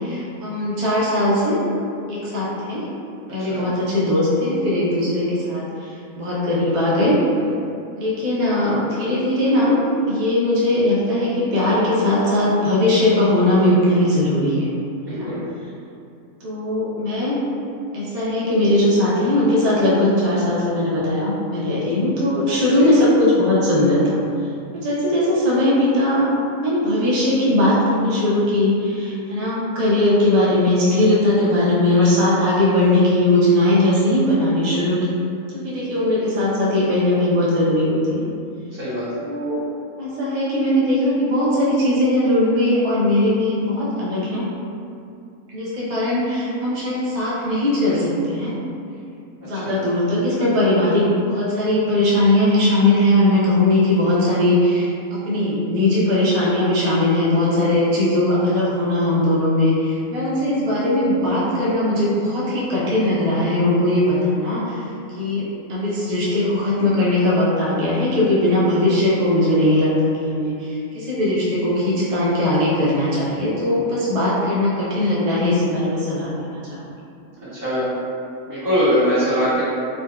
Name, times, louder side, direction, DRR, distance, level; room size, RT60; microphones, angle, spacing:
voice 1, 0.0-1.6 2.1-2.9 3.3-5.6 6.2-7.2 8.0-9.8 10.1-14.7 15.1-15.3 16.4-17.4 17.9-24.2 24.7-26.3 26.6-35.0 35.5-38.2 39.3-39.6 40.0-44.5 45.5-48.6 49.4-64.8 65.2-76.8, left 1 dB, 60° right, -8 dB, 0.4 m, -19 dB
voice 2, 15.1-15.4 22.8-22.9 38.8-39.0 49.6-49.8 77.4-77.8 78.5-79.6, equal, 40° right, -14 dB, 1.5 m, -21 dB
3.7 x 2.2 x 2.3 m, 2.6 s
omnidirectional pair, 1.5 m